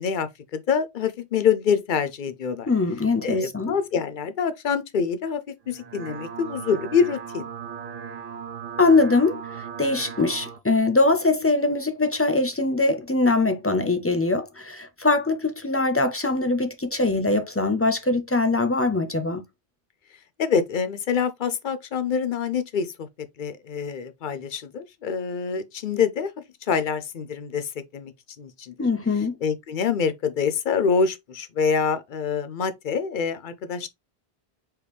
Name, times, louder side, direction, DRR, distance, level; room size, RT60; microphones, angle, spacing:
voice 1, 0.0-2.7 3.2-5.4 5.7-7.5 20.4-23.1 23.4-26.3 26.6-28.1 28.4-28.7 29.4-33.9, left 6 dB, 55° left, 0.7 m, -25 dB
voice 2, 2.7-3.7 8.8-19.4 28.8-29.4, left 3 dB, 25° left, 0.3 m, -22 dB
sound 1, 5.6-10.6, right 7 dB, 60° right, 0.7 m, -37 dB
4.5 x 3.4 x 3.0 m
omnidirectional pair, 1.1 m